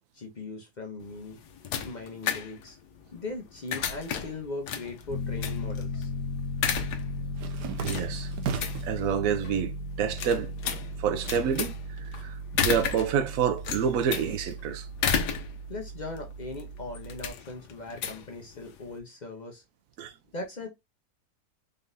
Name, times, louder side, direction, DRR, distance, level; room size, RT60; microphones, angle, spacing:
voice 1, 0.1-1.4 1.8-2.8 3.1-6.1 15.7-19.6 20.3-20.7, left 2 dB, 40° left, 0.7 m, -39 dB
sound 1, 1.0-19.0, left 7 dB, 85° left, 1.3 m, -34 dB
Piano, 5.1-17.3, equal, 15° left, 1.1 m, -36 dB
sound 2, 5.2-5.9 6.2-9.0 9.5-10.1 10.4-12.1, right 9 dB, 90° right, 1.3 m, -38 dB
voice 2, 7.8-8.3 8.8-10.5 11.0-11.8 12.1-14.9 20.0-20.1, right 7 dB, 65° right, 1.0 m, -28 dB
4.0 x 3.6 x 2.6 m
omnidirectional pair, 1.7 m